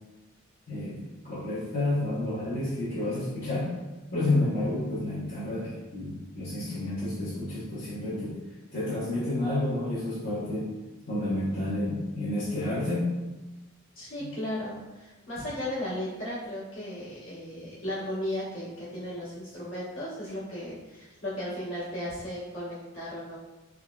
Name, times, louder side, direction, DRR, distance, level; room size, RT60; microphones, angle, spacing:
voice 1, 0.7-3.7 4.1-8.4 8.7-10.7 11.1-13.1, left 1 dB, 55° left, -12 dB, 0.9 m, -30 dB
voice 2, 13.9-23.4, left 1 dB, 75° left, -10 dB, 1.3 m, -35 dB
3.4 x 2.0 x 2.3 m, 1.1 s
head